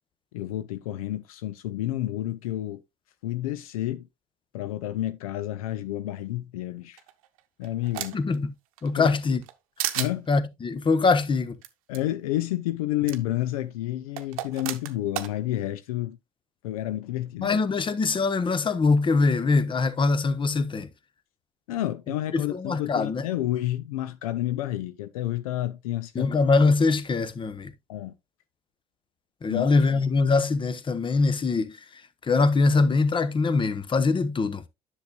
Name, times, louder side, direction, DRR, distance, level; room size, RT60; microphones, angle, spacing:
voice 1, 0.3-2.8 3.2-4.1 4.5-7.0 7.6-8.2 9.0-9.2 9.9-10.3 11.9-16.2 16.6-17.6 21.7-26.3 27.9-28.1 29.5-29.7, left 14 dB, 75° left, 0.5 m, -30 dB
sound 1, 7.0-8.4 8.8-9.5 9.8-10.1 11.6-11.7 11.9-12.0 13.1-13.2 14.2-15.3, right 13 dB, 75° right, 0.8 m, -32 dB
voice 2, 8.1-8.5 8.8-9.4 10.3-11.6 17.4-20.9 22.3-23.2 26.1-27.7 29.4-31.7 32.2-34.6, left 4 dB, 25° left, 0.9 m, -23 dB
10.5 x 6.4 x 2.3 m
hypercardioid pair, 60°, 18 cm